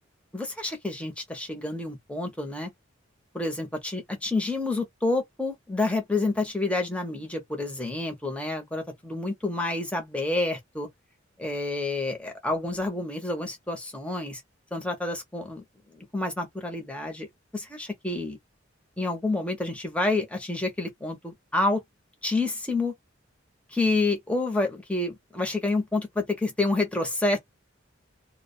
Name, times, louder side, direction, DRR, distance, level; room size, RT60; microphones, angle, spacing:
voice 1, 0.3-2.7 3.3-10.9 11.4-14.4 14.7-15.6 15.9-17.3 17.5-18.4 19.0-21.8 22.2-22.9 23.7-27.4, left 2 dB, 5° left, 0.8 m, -28 dB
2.3 x 2.2 x 2.6 m
head